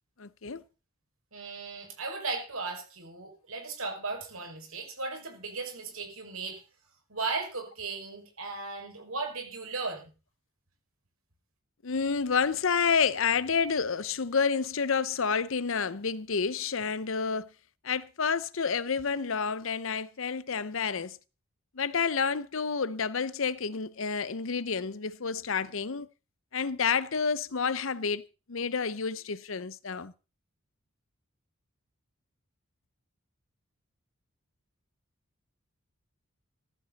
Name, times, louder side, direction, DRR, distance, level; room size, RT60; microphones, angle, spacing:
voice 1, 0.2-0.6 11.8-17.5 17.8-21.2 21.7-26.1 26.5-30.1, left 5 dB, 65° left, 0.7 m, -29 dB
voice 2, 1.3-6.6 7.1-10.1, right 3 dB, 75° right, 5.9 m, -36 dB
15.0 x 14.5 x 4.1 m
head